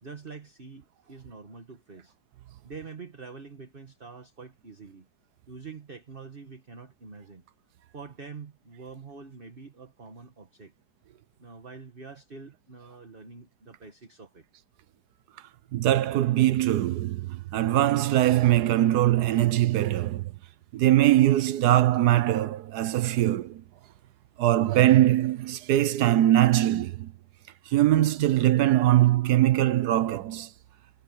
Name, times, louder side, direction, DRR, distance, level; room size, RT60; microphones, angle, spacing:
voice 1, 0.0-2.1 2.6-5.1 5.5-7.4 7.9-10.7 11.4-14.4, right 4 dB, 30° right, 1.7 m, -45 dB
voice 2, 15.7-20.3 20.7-23.6 24.4-27.1 27.7-30.5, right 14 dB, 65° right, 1.2 m, -22 dB
omnidirectional pair, 2.0 m